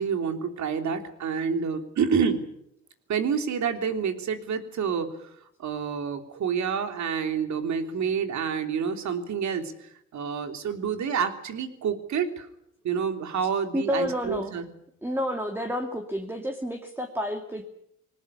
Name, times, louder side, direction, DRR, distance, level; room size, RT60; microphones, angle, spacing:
voice 1, 0.0-2.4 3.1-5.2 5.6-12.5 12.8-14.7, right 6 dB, 65° right, 7 dB, 3.3 m, -28 dB
voice 2, 13.7-14.5 15.0-17.7, equal, 5° right, 4 dB, 2.5 m, -30 dB
21.0 x 18.5 x 9.9 m, 0.73 s
cardioid pair, 90°, 30 cm